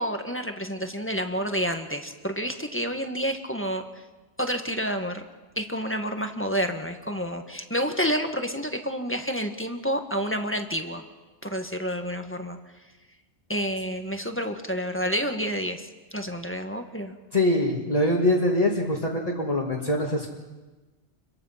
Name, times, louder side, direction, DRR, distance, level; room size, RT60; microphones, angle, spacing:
voice 1, 0.0-3.8 4.4-5.2 5.6-11.0 11.4-12.6 13.5-17.2, equal, 10° left, 5 dB, 1.5 m, -29 dB
voice 2, 17.3-20.3, left 1 dB, 35° left, -4 dB, 2.4 m, -23 dB
28.5 x 23.0 x 5.8 m, 1.2 s
omnidirectional pair, 1.1 m